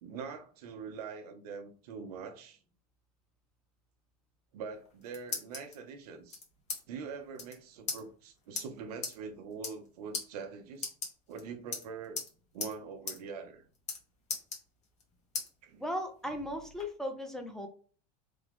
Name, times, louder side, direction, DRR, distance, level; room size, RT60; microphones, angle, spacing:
voice 1, 0.0-2.6 4.5-6.4 6.9-10.9 11.3-12.2 12.5-13.6 15.6-15.8, right 5 dB, 75° right, 0.8 m, -43 dB
sound 1, 4.7-5.7 6.3-6.8 7.1-7.2 7.3-7.5 7.9-8.0 8.5-8.6 9.0-9.1 9.5-9.9 10.1-10.2 10.7-11.4 11.7-12.3 12.6-12.7 13.1-13.2 13.5-14.0 14.3-15.0 15.3-15.5 16.0-16.8, left 4 dB, 35° left, 1.3 m, -38 dB
voice 2, 15.8-17.7, left 1 dB, ahead, 0.6 m, -37 dB
3.4 x 2.3 x 3.5 m
hypercardioid pair, 105°, 20 cm